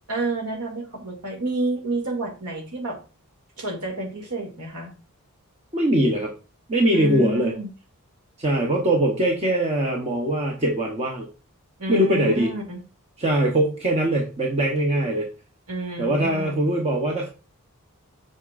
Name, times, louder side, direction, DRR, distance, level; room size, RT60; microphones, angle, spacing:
voice 1, 0.1-3.0 3.6-4.9 6.9-7.7 11.8-12.8 15.7-16.6, right 2 dB, 90° right, 1 dB, 2.4 m, -29 dB
voice 2, 5.7-6.3 6.7-7.5 8.4-11.3 11.9-12.5 13.2-15.3 16.0-17.3, right 1 dB, 30° right, 0 dB, 0.9 m, -22 dB
8.1 x 5.6 x 2.5 m, 0.34 s
head